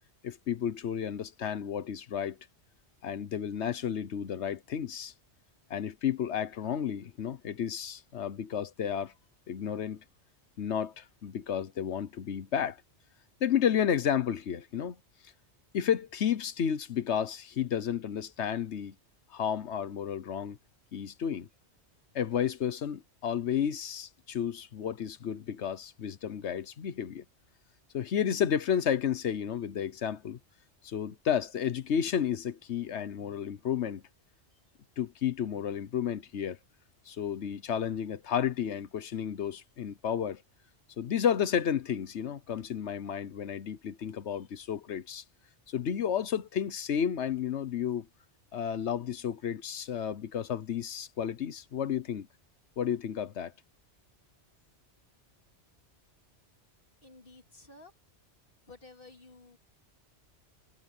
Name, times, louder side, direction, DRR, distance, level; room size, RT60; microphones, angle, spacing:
voice 1, 0.2-2.4 3.0-5.1 5.7-9.1 9.5-10.0 10.6-12.8 13.4-15.0 15.7-18.9 19.3-20.6 20.9-21.5 22.1-27.2 27.9-30.4 30.8-34.0 35.0-36.6 37.1-40.4 41.0-45.2 45.7-48.1 48.5-52.3 52.8-53.5, left 8 dB, 80° left, 1.2 m, -32 dB
voice 2, 57.0-57.9 58.7-59.6, left 3 dB, 50° left, 3.1 m, -53 dB
omnidirectional pair, 1.1 m